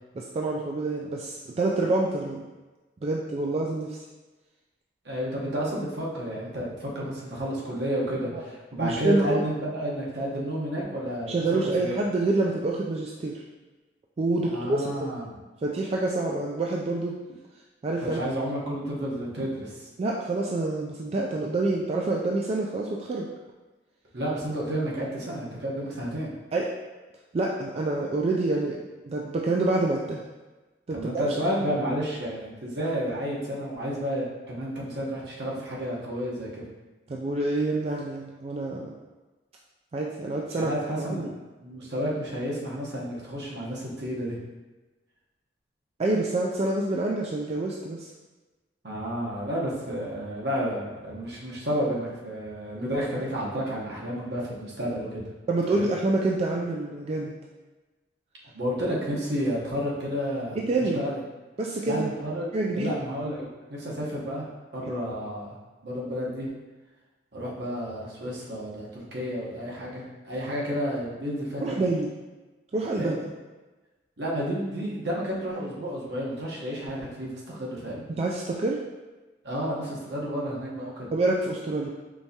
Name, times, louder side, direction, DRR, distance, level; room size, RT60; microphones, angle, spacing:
voice 1, 0.2-2.4 3.0-4.0 8.3-8.4 8.8-9.4 11.3-13.4 14.2-14.9 15.6-17.2 17.8-18.2 20.0-23.3 26.5-26.7 27.3-30.2 30.9-31.0 37.1-38.9 39.9-41.3 46.0-48.1 55.5-57.3 60.6-61.0 61.6-62.1 62.5-62.9 71.6-72.1 72.7-73.2 78.2-78.8 81.1-81.9, right 2 dB, 35° right, -2 dB, 0.3 m, -27 dB
voice 2, 5.0-11.4 11.8-11.9 14.5-15.4 18.0-19.9 24.1-26.3 30.9-36.7 40.6-41.3 41.6-44.4 48.8-55.3 55.7-55.9 58.5-61.2 61.9-62.5 62.7-64.4 64.7-65.6 65.8-66.5 67.3-71.8 73.0-73.2 74.2-78.0 79.4-81.1, equal, 65° right, -4 dB, 1.1 m, -31 dB
4.6 x 3.3 x 2.8 m, 1.2 s
head